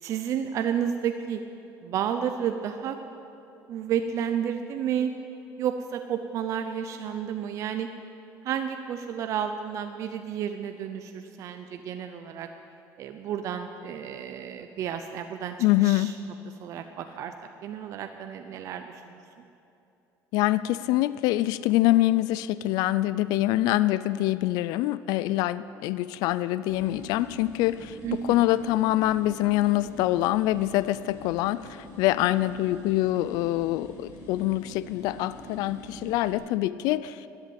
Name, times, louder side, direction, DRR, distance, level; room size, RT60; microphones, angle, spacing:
voice 1, 0.0-1.4 1.8-3.0 3.7-5.1 5.6-7.9 8.4-12.5 13.0-16.1 16.6-17.3 17.6-19.2 28.0-28.5, right 8 dB, 50° right, 7 dB, 0.6 m, -31 dB
voice 2, 15.6-16.1 20.3-28.0 28.3-37.3, left 16 dB, 70° left, 16 dB, 0.3 m, -25 dB
sound 1, 26.7-36.4, left 1 dB, 50° left, 3.8 m, -45 dB
13.0 x 10.5 x 8.3 m, 2.8 s
cardioid pair, 150°, 7 cm